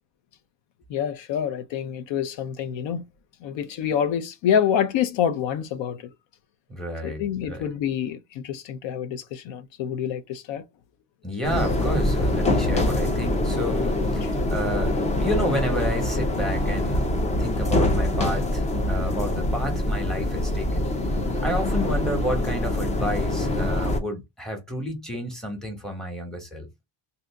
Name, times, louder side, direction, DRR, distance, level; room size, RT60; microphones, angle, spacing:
voice 1, 0.9-3.0 3.4-6.1 7.0-10.6 14.0-14.3, left 8 dB, 70° left, 0.7 m, -27 dB
voice 2, 6.7-7.6 11.2-17.1 17.4-20.9 21.4-26.7, equal, ahead, 0.9 m, -30 dB
sound 1, 11.4-24.0, left 1 dB, 15° left, 0.3 m, -24 dB
2.7 x 2.6 x 3.3 m
cardioid pair, 175°, 46 cm